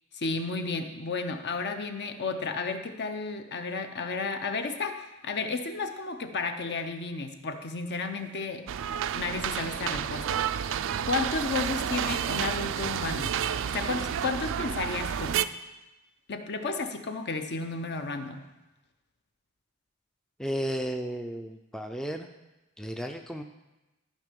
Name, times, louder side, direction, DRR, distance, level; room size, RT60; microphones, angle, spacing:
voice 1, 0.1-8.7 9.2-10.4 11.0-13.3 13.7-15.4 16.3-18.5, left 4 dB, 50° left, 7 dB, 0.8 m, -32 dB
sound 1, 8.7-15.5, right 9 dB, 60° right, 0.4 m, -30 dB
voice 2, 20.4-22.3 22.8-23.4, equal, 5° left, 5 dB, 0.4 m, -33 dB
13.0 x 5.5 x 5.2 m, 1.0 s
head